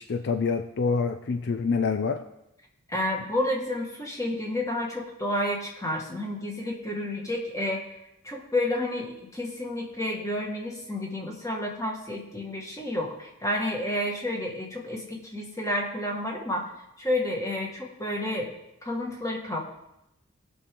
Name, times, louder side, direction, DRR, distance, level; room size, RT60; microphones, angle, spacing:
voice 1, 0.0-2.2, left 5 dB, 55° left, 8 dB, 0.5 m, -26 dB
voice 2, 2.9-7.9 8.2-16.7 17.0-18.5 18.8-19.6, left 1 dB, 15° left, -1 dB, 1.8 m, -30 dB
18.5 x 6.3 x 3.8 m, 0.86 s
head